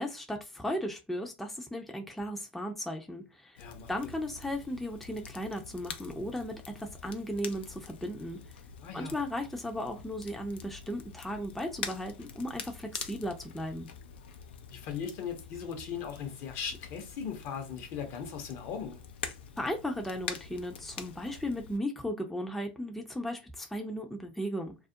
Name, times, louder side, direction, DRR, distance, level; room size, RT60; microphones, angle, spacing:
voice 1, 0.0-3.6 3.9-8.4 8.9-13.9 19.6-24.8, equal, 5° left, 0.5 m, -36 dB
Crackle, 3.6-21.8, left 7 dB, 75° left, 0.4 m, -45 dB
voice 2, 3.6-4.2 8.8-9.2 14.7-19.0, left 7 dB, 55° left, 0.8 m, -38 dB
2.4 x 2.0 x 2.6 m
hypercardioid pair, 90°, 6 cm